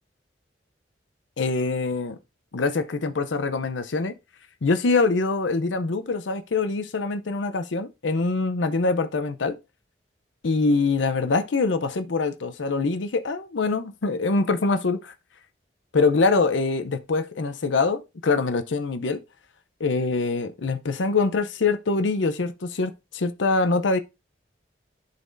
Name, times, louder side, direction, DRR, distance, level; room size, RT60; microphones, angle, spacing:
voice 1, 1.4-2.2 2.5-4.1 4.6-9.6 10.4-15.1 15.9-19.2 19.8-24.0, left 3 dB, 80° left, 0.6 m, -24 dB
11.0 x 4.1 x 2.6 m
head